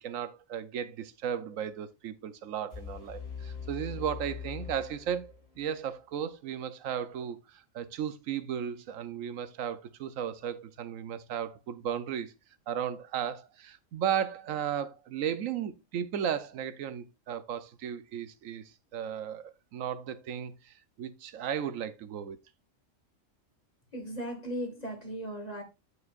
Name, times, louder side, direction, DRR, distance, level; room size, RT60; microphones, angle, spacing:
voice 1, 0.0-12.3 12.7-22.4, right 9 dB, 80° right, 1.1 m, -35 dB
sound 1, 2.7-5.7, left 6 dB, 50° left, 5.4 m, -42 dB
voice 2, 23.9-25.6, equal, 30° left, 2.0 m, -37 dB
8.6 x 7.0 x 2.4 m
omnidirectional pair, 1.3 m